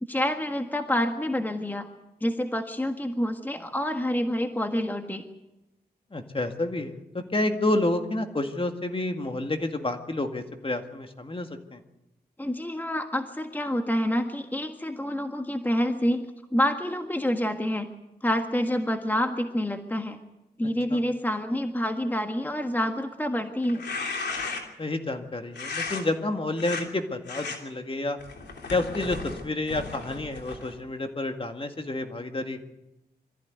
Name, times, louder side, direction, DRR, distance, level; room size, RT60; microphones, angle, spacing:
voice 1, 0.1-1.9 2.2-5.2 12.4-16.3 16.5-17.9 18.2-20.2 20.6-23.8, equal, 10° left, 5 dB, 1.6 m, -27 dB
voice 2, 6.1-11.8 20.9-21.0 24.8-28.2 28.7-32.6, left 2 dB, 30° left, 6 dB, 2.0 m, -29 dB
sound 1, 23.6-24.9 25.5-26.0 26.5-26.8 27.3-27.6 28.2-30.8, left 4 dB, 85° left, 3.1 m, -35 dB
23.0 x 14.5 x 9.4 m, 0.96 s
cardioid pair, 75°, 17 cm